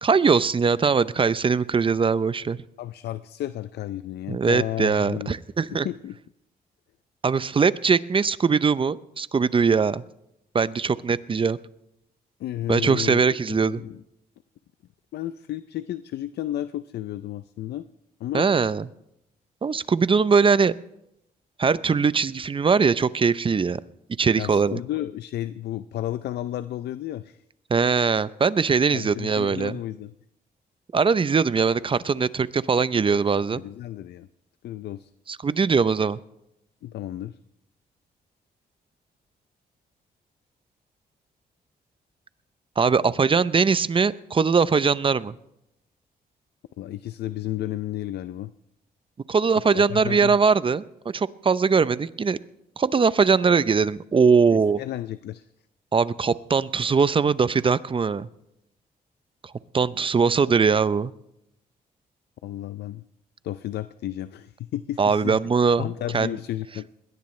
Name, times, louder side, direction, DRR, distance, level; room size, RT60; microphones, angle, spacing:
voice 1, 0.0-2.6 4.3-5.9 7.2-10.0 10.5-11.6 12.7-13.8 18.3-18.9 19.6-20.8 21.6-23.8 24.2-24.8 27.7-29.8 30.9-33.6 35.3-36.2 42.8-45.3 49.3-50.8 51.1-52.4 52.8-54.8 55.9-58.3 59.7-61.1 65.0-66.3, right 5 dB, 30° right, 16 dB, 0.6 m, -21 dB
voice 2, 2.8-5.4 5.7-6.2 12.4-13.2 13.5-14.0 15.1-17.9 18.2-18.5 24.4-27.4 28.9-30.1 33.5-34.3 34.6-35.1 36.8-37.4 46.8-48.5 49.7-50.4 54.5-55.5 62.4-63.0 63.4-65.4 65.8-66.9, left 13 dB, 80° left, 13 dB, 0.5 m, -32 dB
21.0 x 17.5 x 3.2 m, 0.82 s
cardioid pair, 80°, 17 cm